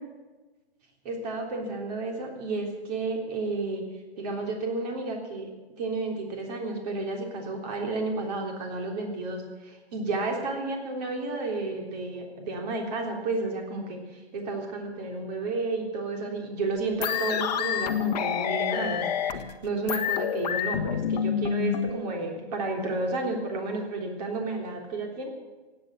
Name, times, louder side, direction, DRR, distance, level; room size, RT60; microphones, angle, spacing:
voice 1, 1.1-3.8 4.2-5.5 5.8-14.0 14.3-25.3, right 2 dB, 40° right, 2 dB, 3.5 m, -31 dB
sound 1, 17.0-21.9, left 8 dB, 40° left, 1.2 m, -28 dB
16.5 x 9.5 x 9.1 m, 1.2 s
figure-of-eight pair, 130°, 33 cm